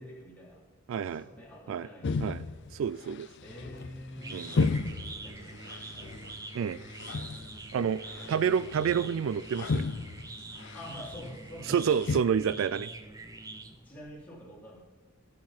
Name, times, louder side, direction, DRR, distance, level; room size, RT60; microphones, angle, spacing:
voice 1, 0.0-2.5 3.4-6.3 7.7-8.6 10.7-12.1 13.8-14.8, equal, 5° left, -5 dB, 3.3 m, -48 dB
voice 2, 0.9-1.2 1.7-1.9 2.2-2.4 2.7-3.3 4.3-4.5 6.5-6.8 7.7-8.0 8.3-9.9 11.7-12.9, right 7 dB, 65° right, 16 dB, 0.3 m, -28 dB
sound 1, 2.0-12.2, left 3 dB, 55° left, 0.5 m, -35 dB
sound 2, 3.7-14.1, right 3 dB, 15° right, 0.7 m, -45 dB
18.0 x 7.5 x 4.3 m, 1.2 s
head